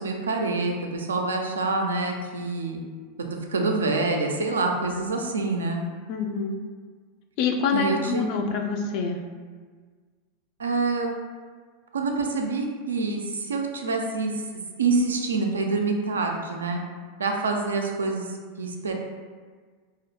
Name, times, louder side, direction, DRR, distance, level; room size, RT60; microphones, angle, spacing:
voice 1, 0.0-2.8 3.5-5.8 7.7-8.3 10.6-11.1 11.9-16.8 17.2-18.9, right 3 dB, 85° right, 2 dB, 0.3 m, -26 dB
voice 2, 6.1-6.6 7.4-9.2, left 5 dB, 55° left, 3 dB, 0.3 m, -26 dB
2.4 x 2.1 x 2.7 m, 1.5 s
hypercardioid pair, 95°, 0 cm